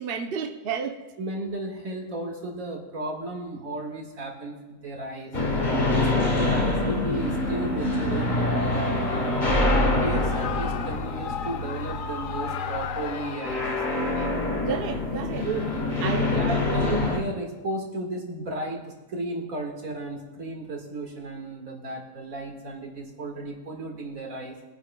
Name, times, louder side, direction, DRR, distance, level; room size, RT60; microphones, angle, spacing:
voice 1, 0.0-1.0 14.7-15.5 16.0-16.3 16.6-16.9, right 6 dB, 50° right, 0.8 m, -31 dB
voice 2, 1.2-5.3 5.8-14.3 15.4-15.6 16.0-18.8 19.1-24.6, right 2 dB, 75° right, 2.2 m, -34 dB
sound 1, 5.3-17.2, left 2 dB, 35° left, 1.5 m, -26 dB
Shout / Cheering, 8.7-14.1, left 7 dB, 70° left, 0.5 m, -35 dB
23.0 x 9.6 x 2.2 m
omnidirectional pair, 1.5 m